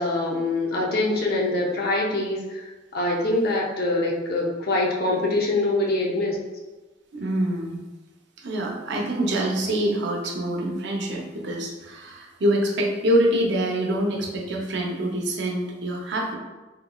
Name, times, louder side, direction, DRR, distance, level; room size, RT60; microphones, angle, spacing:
voice 1, 0.0-6.4, left 2 dB, 55° left, -2 dB, 0.7 m, -24 dB
voice 2, 7.1-7.8 8.4-16.3, right 1 dB, 65° right, 0 dB, 0.6 m, -25 dB
3.7 x 2.9 x 2.3 m, 1.2 s
head